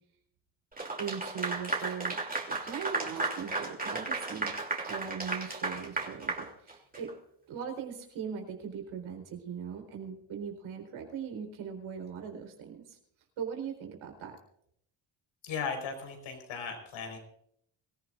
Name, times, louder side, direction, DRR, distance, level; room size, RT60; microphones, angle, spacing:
Clapping / Applause, 0.8-7.1, right 3 dB, 20° right, 3.0 m, -34 dB
voice 1, 1.0-2.2 2.5-4.6 4.9-7.1 7.5-13.0 13.4-14.4, right 7 dB, 85° right, 3 dB, 4.2 m, -40 dB
voice 2, 15.4-17.2, left 5 dB, 80° left, 5 dB, 4.7 m, -37 dB
24.0 x 15.5 x 2.6 m, 0.70 s
cardioid pair, 100°, 46 cm